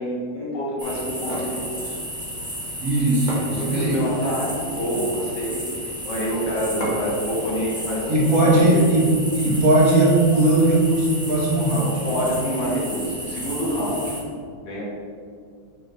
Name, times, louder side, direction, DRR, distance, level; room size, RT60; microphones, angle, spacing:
voice 1, 0.0-2.0 3.6-5.6 6.0-8.9 12.0-14.1 14.6-14.8, equal, 75° left, -5 dB, 2.2 m, -27 dB
sound 1, 0.8-14.2, equal, 5° right, 1.0 m, -33 dB
sound 2, 1.2-1.6 2.8-2.9 3.3-4.1 4.7-5.2 6.8-7.2, equal, 30° left, 1.2 m, -32 dB
voice 2, 2.8-4.0 8.1-12.1, right 2 dB, 55° right, -5 dB, 1.7 m, -18 dB
6.0 x 5.0 x 4.0 m, 2.2 s
omnidirectional pair, 1.9 m